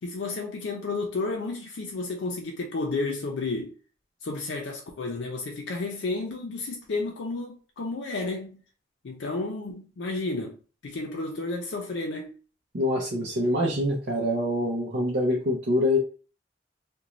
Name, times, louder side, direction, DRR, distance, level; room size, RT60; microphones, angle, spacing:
voice 1, 0.0-3.7 4.2-8.6 9.0-10.6 10.8-12.3, left 3 dB, 90° left, 0.5 m, -32 dB
voice 2, 12.7-16.0, left 1 dB, 65° right, 0.6 m, -25 dB
2.5 x 2.1 x 3.0 m
head